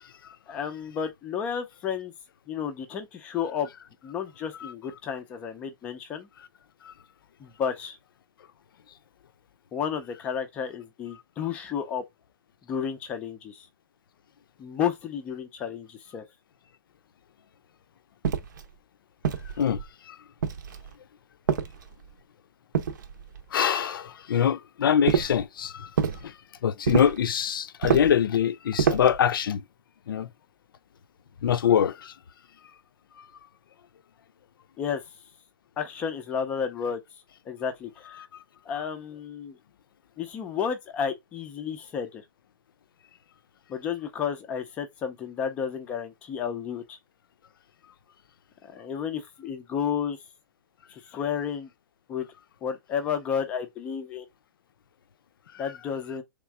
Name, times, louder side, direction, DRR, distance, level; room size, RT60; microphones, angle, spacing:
voice 1, 0.5-2.1 2.5-3.7 4.0-6.3 7.4-8.0 9.7-12.0 12.7-13.7 14.6-16.2 34.8-35.0 35.8-37.0 37.5-38.3 38.7-39.6 40.2-42.2 43.7-47.0 48.6-50.2 50.9-51.7 52.1-52.3 52.6-54.3 55.6-56.2, left 7 dB, 10° left, 0.4 m, -32 dB
sound 1, 18.2-18.7 19.2-19.9 20.4-20.9 21.5-22.1 22.7-23.4 25.1-25.4 26.0-26.2 26.9-27.3 27.8-28.2 28.8-29.2, right 7 dB, 60° right, 0.7 m, -27 dB
voice 2, 19.6-20.2 23.5-25.9 26.2-26.4 26.6-29.6 30.1-30.3 31.4-32.1, left 8 dB, 80° left, 0.5 m, -24 dB
3.6 x 3.0 x 4.7 m
hypercardioid pair, 175°, 11 cm